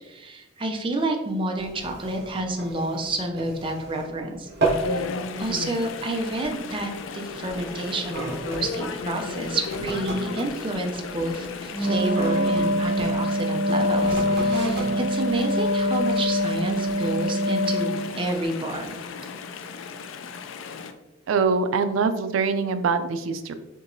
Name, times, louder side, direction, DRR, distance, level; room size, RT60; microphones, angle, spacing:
voice 1, 0.0-4.5 4.9-5.0 5.4-19.0, right 1 dB, 25° right, 3 dB, 0.4 m, -29 dB
sound 1, 1.6-4.2 4.4-5.0 5.4-5.7 6.4-6.6 7.3-13.1 13.9-16.3 16.9-17.0, right 2 dB, 60° right, 1.2 m, -33 dB
Chatter / Stream, 4.6-20.9, left 5 dB, 80° left, 0.3 m, -36 dB
Wind instrument woodwind instrument, 11.7-18.2, equal, 15° left, 0.8 m, -24 dB
voice 2, 21.3-23.5, right 5 dB, 85° right, 10 dB, 0.4 m, -23 dB
4.6 x 2.9 x 2.6 m, 1.1 s
head